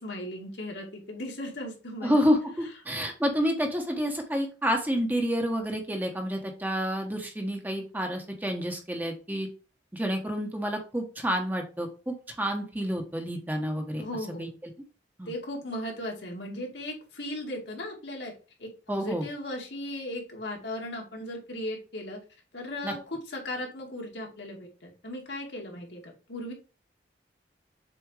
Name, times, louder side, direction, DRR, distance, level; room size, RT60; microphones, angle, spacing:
voice 1, 0.0-2.2 14.0-14.5 15.3-18.3 18.6-22.2 22.5-26.5, left 1 dB, 75° left, 0 dB, 2.2 m, -37 dB
voice 2, 2.0-9.5 9.9-14.0 14.4-14.5 15.2-15.3 18.9-19.3 22.8-22.9, equal, 10° right, 3 dB, 1.1 m, -29 dB
7.4 x 4.2 x 3.3 m, 0.34 s
head